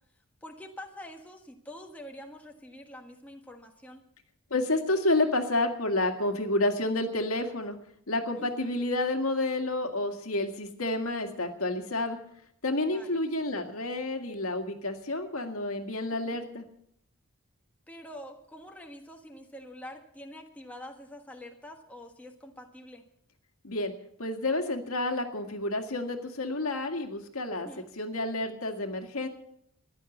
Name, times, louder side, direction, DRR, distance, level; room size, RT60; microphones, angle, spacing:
voice 1, 0.4-4.0 8.4-8.8 12.9-13.2 16.2-16.4 17.9-23.0 27.6-27.9, left 1 dB, 5° left, 2 dB, 1.5 m, -46 dB
voice 2, 4.5-7.8 8.1-12.2 12.6-16.7 23.6-23.9 24.2-27.7 28.0-29.3, left 2 dB, 80° left, 5 dB, 1.9 m, -29 dB
15.0 x 11.0 x 7.2 m, 0.73 s
head